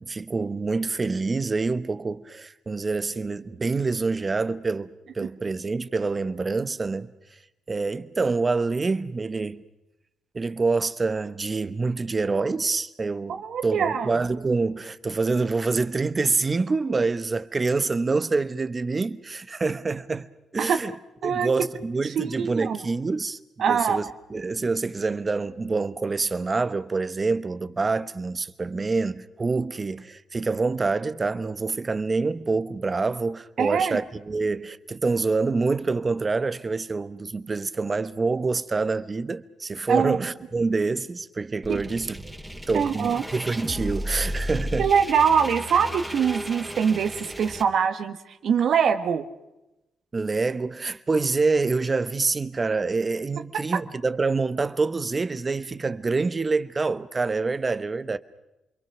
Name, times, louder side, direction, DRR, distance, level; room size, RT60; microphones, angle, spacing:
voice 1, 0.0-4.9 5.1-7.1 7.7-9.6 10.3-20.3 20.5-20.9 21.2-42.3 42.7-44.9 50.1-58.2, right 3 dB, 30° right, 1.0 m, -26 dB
voice 2, 13.3-14.2 20.6-20.8 21.2-21.5 22.0-22.9 23.6-24.0 33.6-34.0 39.9-40.2 41.7-41.8 42.7-43.2 44.8-48.2 48.4-49.3, right 7 dB, 65° right, 1.4 m, -23 dB
sound 1, 41.6-47.6, equal, ahead, 3.0 m, -34 dB
28.0 x 23.0 x 6.1 m
cardioid pair, 75°, 0 cm